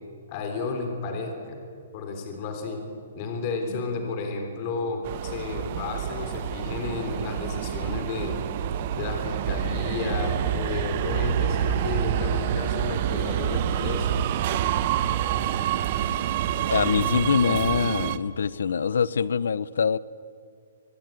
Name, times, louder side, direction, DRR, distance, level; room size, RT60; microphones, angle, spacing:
voice 1, 0.3-1.6 1.9-2.8 3.2-8.4 8.9-14.2, left 4 dB, 30° left, 4 dB, 3.5 m, -32 dB
Subway metro underground, 5.0-18.2, right 10 dB, 35° right, 1.0 m, -27 dB
voice 2, 16.7-20.0, left 6 dB, 85° left, 20 dB, 0.8 m, -24 dB
23.5 x 21.0 x 9.2 m, 2.3 s
hypercardioid pair, 175°, 0 cm